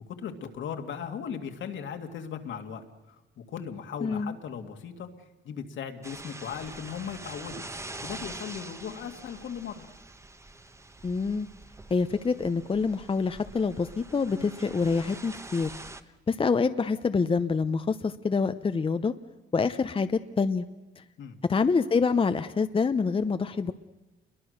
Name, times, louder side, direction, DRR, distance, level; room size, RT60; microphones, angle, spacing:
voice 1, 0.2-5.1 5.4-7.6 8.0-9.9 21.2-21.4, left 7 dB, 70° left, 6 dB, 2.2 m, -38 dB
voice 2, 4.0-4.3 11.0-11.5 11.9-15.7 16.3-19.1 19.5-20.6 21.0-21.1 21.5-23.7, left 4 dB, 25° left, 10 dB, 0.8 m, -26 dB
sound 1, 6.0-16.0, right 2 dB, 15° right, 1.2 m, -44 dB
28.5 x 22.5 x 6.6 m, 1.1 s
cardioid pair, 90°, 20 cm